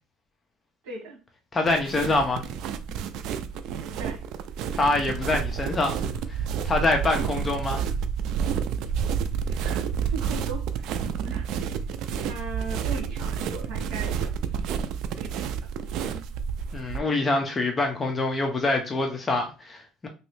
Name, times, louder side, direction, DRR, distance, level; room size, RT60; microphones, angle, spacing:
voice 1, 0.8-1.2 3.8-4.2 9.5-10.9 11.1-11.8 12.2-14.7 15.1-15.3 15.6-16.2, right 4 dB, 85° right, 1.3 m, -39 dB
voice 2, 1.5-2.4 4.7-6.0 6.6-7.8 16.7-20.1, left 2 dB, 20° left, 0.5 m, -25 dB
sound 1, 1.6-17.0, right 7 dB, 55° right, 0.3 m, -30 dB
3.0 x 2.6 x 3.2 m
cardioid pair, 160°, 0 cm